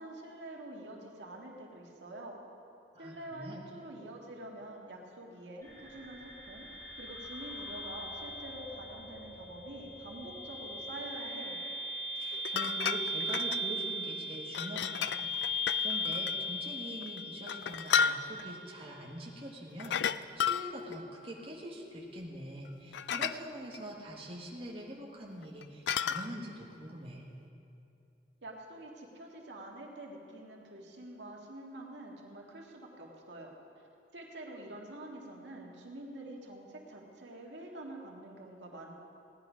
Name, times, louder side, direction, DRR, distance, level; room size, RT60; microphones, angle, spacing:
voice 1, 0.0-2.4 3.0-6.7 7.0-11.6 28.4-33.5 34.1-38.9, right 1 dB, 85° right, -1 dB, 1.9 m, -46 dB
voice 2, 2.9-3.6 12.1-27.3, equal, 30° right, -3 dB, 1.5 m, -44 dB
sound 1, 5.6-18.6, left 1 dB, 20° left, 2.7 m, -38 dB
sound 2, 12.3-13.6 14.5-16.4 17.0-18.5 19.8-21.0 22.7-22.8 22.9-23.4 23.7-23.8 25.4-26.3, left 7 dB, 75° left, 0.3 m, -33 dB
17.0 x 10.5 x 5.1 m, 2.7 s
head